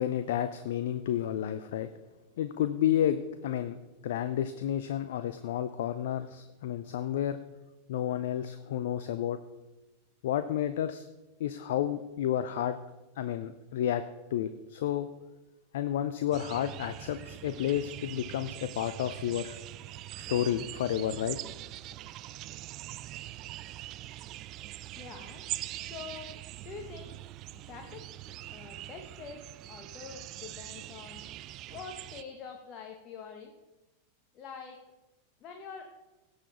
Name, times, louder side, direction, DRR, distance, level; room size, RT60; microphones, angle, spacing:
voice 1, 0.0-1.9 2.4-3.8 4.0-7.4 7.9-9.4 10.2-11.1 11.4-12.8 13.2-14.0 14.3-15.1 15.7-19.6 20.3-21.4, left 11 dB, 55° left, 11 dB, 0.5 m, -31 dB
sound 1, 16.3-32.2, right 15 dB, 35° right, 0.4 m, -43 dB
voice 2, 25.0-25.5 25.8-26.4 26.6-27.2 27.5-28.0 28.5-31.2 31.7-33.5 34.3-34.8 35.4-35.8, left 6 dB, 35° left, 3 dB, 1.2 m, -45 dB
17.0 x 7.0 x 4.0 m, 1.1 s
figure-of-eight pair, 90°, 0 cm